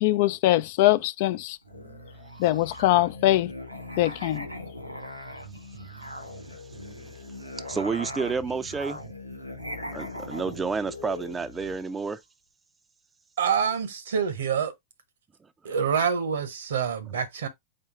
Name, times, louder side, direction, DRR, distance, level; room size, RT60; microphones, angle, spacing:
voice 1, 0.0-1.6 2.4-3.5 4.0-4.5, left 15 dB, 50° left, 0.3 m, -22 dB
Musical instrument, 1.6-11.8, left 1 dB, 85° right, 2.0 m, -40 dB
voice 2, 7.6-9.0 9.9-12.2, right 5 dB, 15° right, 0.4 m, -30 dB
voice 3, 13.4-14.7 15.6-17.5, right 7 dB, 65° right, 0.9 m, -26 dB
4.4 x 3.5 x 3.2 m
figure-of-eight pair, 90°, 0 cm